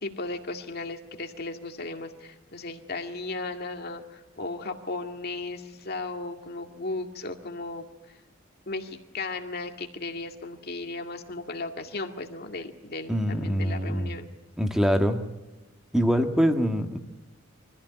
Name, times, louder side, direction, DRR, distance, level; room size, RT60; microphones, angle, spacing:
voice 1, 0.0-7.9 8.7-14.3, left 3 dB, 50° left, 5 dB, 2.1 m, -36 dB
voice 2, 13.1-14.1 14.6-15.2 15.9-17.0, equal, 5° right, 5 dB, 1.7 m, -24 dB
24.5 x 15.0 x 10.0 m, 1.1 s
head